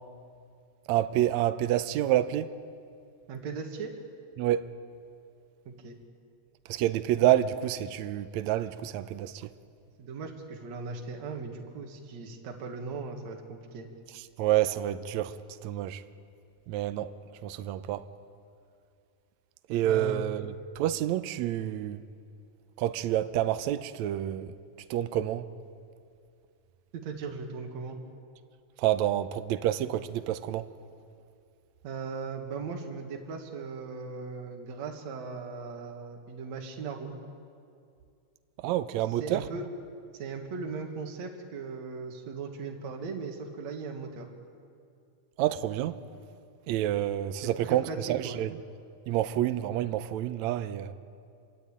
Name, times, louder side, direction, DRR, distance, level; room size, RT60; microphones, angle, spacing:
voice 1, 0.9-2.5 4.4-4.7 6.7-9.5 14.4-15.4 15.6-16.0 16.7-17.1 17.4-18.1 19.7-22.0 22.8-24.5 24.9-25.5 28.8-30.7 38.6-39.4 45.4-46.0 46.7-48.5 49.1-50.9, right 12 dB, 75° right, 1.8 m, -28 dB
voice 2, 3.3-3.9 5.7-6.0 10.0-13.9 19.8-20.3 26.9-28.0 31.8-37.1 39.1-39.6 40.1-44.3 47.4-48.4, right 4 dB, 55° right, 3.0 m, -38 dB
27.0 x 23.0 x 8.8 m
omnidirectional pair, 3.9 m